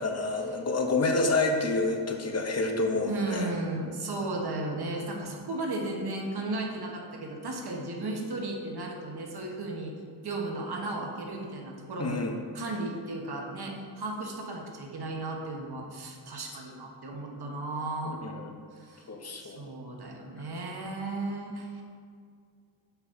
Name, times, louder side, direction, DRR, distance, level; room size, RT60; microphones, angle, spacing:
voice 1, 0.0-3.5 12.0-12.3 18.0-18.5 19.1-19.7, left 3 dB, 35° left, 3 dB, 0.7 m, -28 dB
voice 2, 3.1-9.9 10.2-12.3 12.5-18.2 18.7-19.1 19.4-21.8, right 2 dB, 60° right, 0 dB, 1.1 m, -35 dB
5.7 x 4.1 x 5.8 m, 2.2 s
wide cardioid pair, 130°, 44 cm